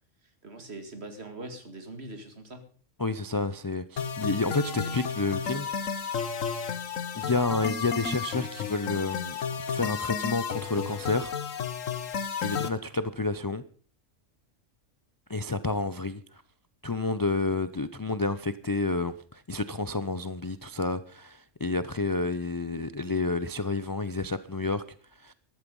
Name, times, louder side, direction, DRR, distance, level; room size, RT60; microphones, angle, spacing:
voice 1, 0.4-2.7 4.7-4.9 12.4-12.7, right 2 dB, 55° right, 7 dB, 2.5 m, -43 dB
voice 2, 3.0-6.8 7.1-9.4 9.7-11.3 12.4-13.6 15.3-16.4 16.8-24.8 25.2-25.3, left 3 dB, 35° left, 13 dB, 0.3 m, -30 dB
sound 1, 4.0-12.7, left 7 dB, 85° left, 1.5 m, -32 dB
14.5 x 12.0 x 5.4 m, 0.43 s
omnidirectional pair, 1.3 m